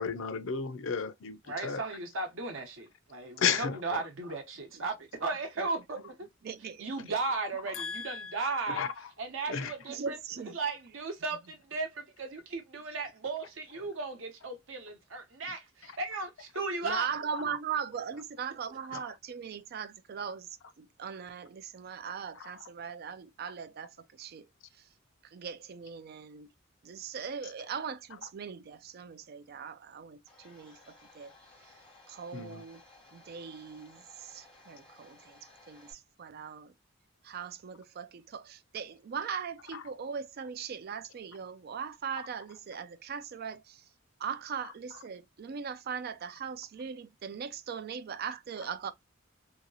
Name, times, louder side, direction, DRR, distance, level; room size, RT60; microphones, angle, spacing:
voice 1, 0.0-2.0 3.4-4.0 7.7-8.9 9.5-9.7 15.8-15.9 17.3-17.4 18.9-19.1 22.4-22.7 32.3-32.6 39.7-39.8, left 6 dB, 80° left, 0.5 m, -34 dB
voice 2, 1.5-6.3 6.8-8.8 9.2-10.2 10.5-17.1, right 3 dB, 80° right, 0.9 m, -36 dB
voice 3, 6.4-7.2 9.9-10.6 16.8-24.5 24.8-24.9 25.2-26.5 26.8-31.3 32.1-32.8 33.1-36.7 37.2-43.8 44.2-48.9, right 7 dB, 50° right, 0.4 m, -40 dB
Domestic sounds home sounds, 30.3-35.9, left 2 dB, 5° left, 1.5 m, -58 dB
2.8 x 2.8 x 2.7 m
head